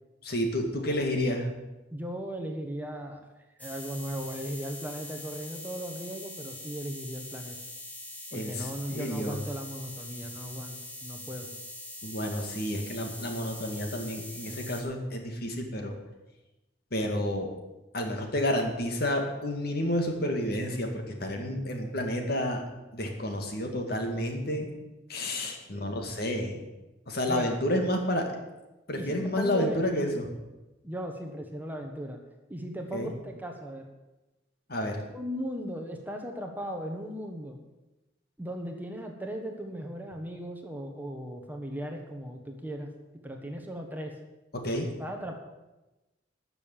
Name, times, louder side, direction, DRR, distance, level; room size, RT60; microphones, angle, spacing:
voice 1, 0.2-1.5 8.3-9.4 12.0-15.9 16.9-17.5 17.9-22.6 22.9-24.7 25.1-26.6 27.1-28.3 28.9-30.3 32.9-33.1 34.7-35.0 44.5-44.9, left 1 dB, 55° left, 3 dB, 2.2 m, -30 dB
voice 2, 1.9-3.3 3.6-7.6 8.3-10.8 11.0-11.6 21.4-21.5 25.7-25.9 27.3-27.5 28.9-29.8 30.8-32.2 32.5-33.8 35.1-37.6 38.4-42.9 43.2-44.1 45.0-45.3, equal, 10° right, 3 dB, 1.3 m, -37 dB
sound 1, 3.6-14.8, left 1 dB, 10° left, 2.0 m, -43 dB
13.0 x 6.9 x 9.1 m, 1.0 s
head